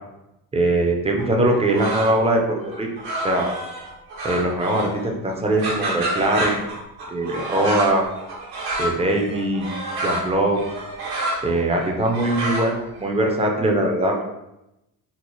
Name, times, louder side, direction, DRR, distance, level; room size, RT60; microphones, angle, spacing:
voice 1, 0.5-2.9 3.2-3.5 4.2-6.6 7.1-8.0 8.8-9.7 10.0-10.6 11.4-14.2, right 1 dB, 20° right, 1 dB, 0.4 m, -21 dB
sound 1, 1.2-2.3 2.6-5.0 5.3-13.0, right 1 dB, 85° right, 1.2 m, -29 dB
4.0 x 2.0 x 2.9 m, 0.90 s
cardioid pair, 150°, 37 cm